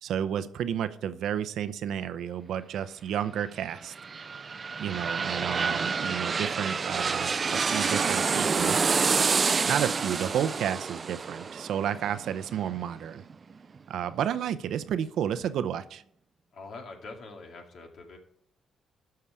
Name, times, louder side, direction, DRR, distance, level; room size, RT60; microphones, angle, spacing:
voice 1, 0.0-3.9 4.8-8.8 9.7-13.2 13.9-16.0, right 9 dB, 75° right, 13 dB, 0.7 m, -31 dB
sound 1, 3.7-13.3 13.8-13.9, right 5 dB, 40° right, 0.4 m, -28 dB
voice 2, 16.5-18.2, left 3 dB, 60° left, 3 dB, 2.2 m, -44 dB
12.5 x 5.7 x 4.9 m, 0.66 s
cardioid pair, 90°, 0 cm